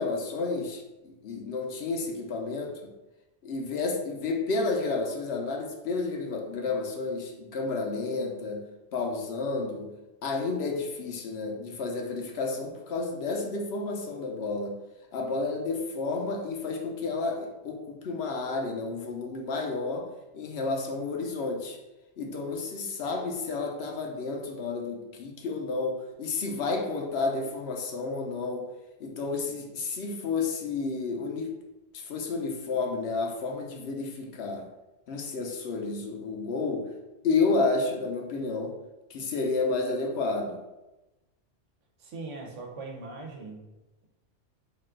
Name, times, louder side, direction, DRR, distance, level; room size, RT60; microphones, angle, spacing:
voice 1, 0.0-2.9 3.4-8.6 8.9-9.9 10.2-14.8 15.1-20.1 20.3-21.8 22.2-28.7 29.0-31.5 31.9-34.7 35.1-36.9 37.2-38.7 39.1-40.6, left 3 dB, 65° left, 2 dB, 0.8 m, -31 dB
voice 2, 42.0-43.6, right 3 dB, 90° right, 1 dB, 1.1 m, -40 dB
3.7 x 2.3 x 3.7 m, 1.0 s
omnidirectional pair, 1.2 m